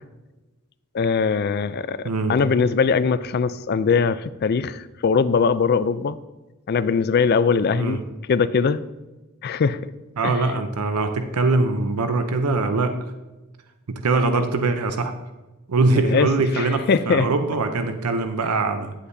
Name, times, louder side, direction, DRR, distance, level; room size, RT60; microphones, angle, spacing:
voice 1, 0.9-2.0 2.3-6.2 6.7-8.0 8.3-8.8 9.4-9.9 10.2-10.4 16.0-16.3 16.5-17.3, left 5 dB, 45° left, 15 dB, 0.3 m, -21 dB
voice 2, 10.2-13.0 13.9-15.1 15.7-18.9, right 3 dB, 85° right, 7 dB, 0.6 m, -22 dB
9.9 x 8.2 x 2.7 m, 1.1 s
head